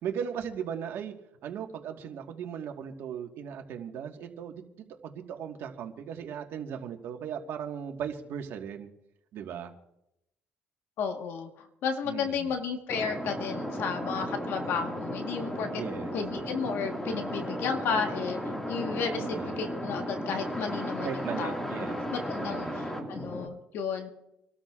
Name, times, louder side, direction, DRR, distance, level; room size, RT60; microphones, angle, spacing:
voice 1, 0.0-1.1 1.4-8.9 9.3-9.7 12.0-12.5 15.7-16.1 19.2-19.6 21.0-22.0 22.4-22.8, right 8 dB, 70° right, 3 dB, 1.6 m, -37 dB
voice 2, 11.0-15.8 16.1-18.4 18.7-21.6 22.1-24.1, left 6 dB, 70° left, 4 dB, 1.4 m, -33 dB
sound 1, 12.9-23.5, equal, 10° left, 2.1 m, -35 dB
27.0 x 13.0 x 2.5 m, 0.83 s
cardioid pair, 95°, 4 cm